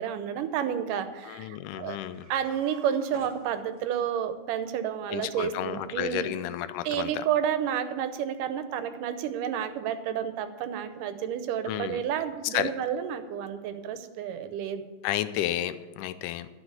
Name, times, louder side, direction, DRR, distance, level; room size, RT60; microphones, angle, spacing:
voice 1, 0.0-2.0 2.3-6.3 6.8-14.9, right 9 dB, 90° right, 9 dB, 2.5 m, -30 dB
voice 2, 1.3-2.3 5.1-7.2 11.7-12.0 12.5-12.7 15.0-16.5, left 12 dB, 80° left, 12 dB, 2.1 m, -32 dB
sound 1, 2.1-4.1, right 4 dB, 45° right, 1.5 m, -50 dB
11.5 x 6.1 x 8.1 m, 1.3 s
omnidirectional pair, 3.7 m